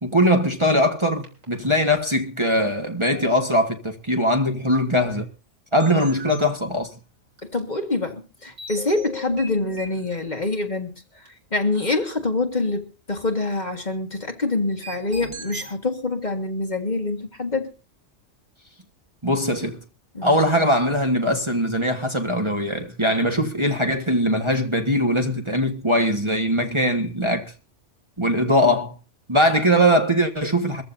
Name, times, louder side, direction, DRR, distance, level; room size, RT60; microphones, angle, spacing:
voice 1, 0.0-5.3 5.7-7.0 19.2-19.8 20.2-27.5 28.2-28.9 29.3-30.8, equal, 25° right, 1.5 m, -21 dB
sound 1, 1.2-1.6 1.9-2.0 3.0-3.2 5.0-5.1 5.8-6.6 7.4-7.6 8.6-10.5 11.3-11.4 11.8-11.9 14.8-15.7, right 1 dB, 80° right, 4.4 m, -38 dB
voice 2, 7.4-10.9 11.2-17.7 20.2-20.4, left 3 dB, 35° left, 1.8 m, -26 dB
23.0 x 15.0 x 2.7 m
omnidirectional pair, 1.3 m